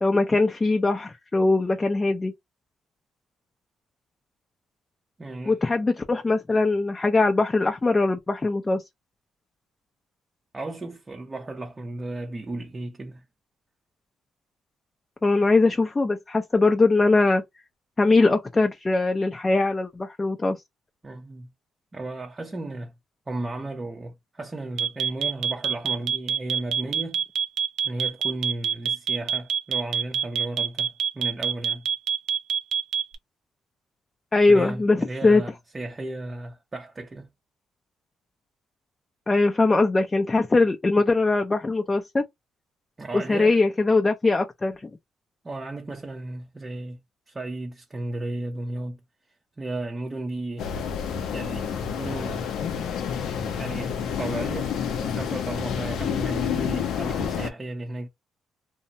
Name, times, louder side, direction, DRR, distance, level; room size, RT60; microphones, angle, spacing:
voice 1, 0.0-2.3 5.5-8.8 15.2-17.4 18.0-20.6 34.3-35.4 39.3-42.2 43.1-44.9, left 3 dB, 25° left, 0.4 m, -21 dB
voice 2, 5.2-5.6 10.5-13.2 21.0-21.5 21.9-22.9 23.3-27.3 27.8-31.9 34.5-37.3 43.0-43.6 45.4-47.0 47.3-49.0 49.6-50.7 51.2-52.8 53.6-54.7 55.0-58.1, right 2 dB, 25° right, 0.5 m, -34 dB
sound 1, 24.8-33.2, right 8 dB, 80° right, 0.4 m, -25 dB
sound 2, 50.6-57.5, left 7 dB, 80° left, 0.5 m, -29 dB
2.6 x 2.0 x 2.6 m
cardioid pair, 90°, 0 cm